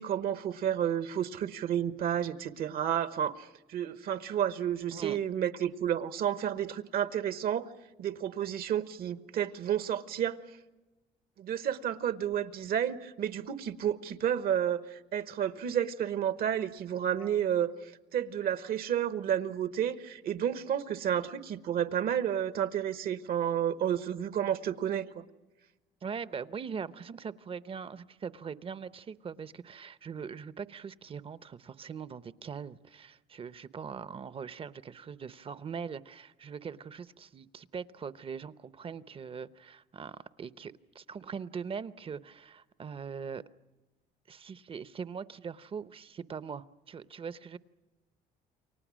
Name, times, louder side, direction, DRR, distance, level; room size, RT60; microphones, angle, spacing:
voice 1, 0.0-7.7 8.0-10.4 11.4-25.2, right 9 dB, 65° right, 1.1 m, -31 dB
voice 2, 26.0-43.4 44.3-47.6, right 6 dB, 35° right, 0.7 m, -41 dB
29.0 x 24.0 x 6.2 m
cardioid pair, 110°, 17 cm